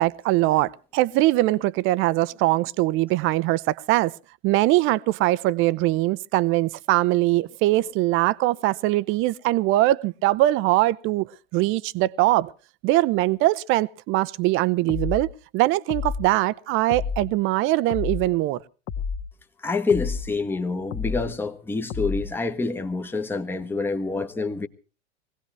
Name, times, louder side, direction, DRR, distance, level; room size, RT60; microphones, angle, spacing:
voice 1, 0.0-4.1 4.4-12.5 12.8-15.3 15.5-18.6, right 17 dB, 35° right, 0.8 m, -22 dB
sound 1, 14.9-15.3 15.9-16.3 16.9-17.3 17.9-18.3 18.9-19.3 19.9-20.3 20.9-21.3 21.9-22.3, left 6 dB, 40° left, 1.7 m, -30 dB
voice 2, 19.6-24.7, left 3 dB, 5° left, 1.2 m, -27 dB
22.0 x 17.0 x 3.2 m
hypercardioid pair, 95°, 33 cm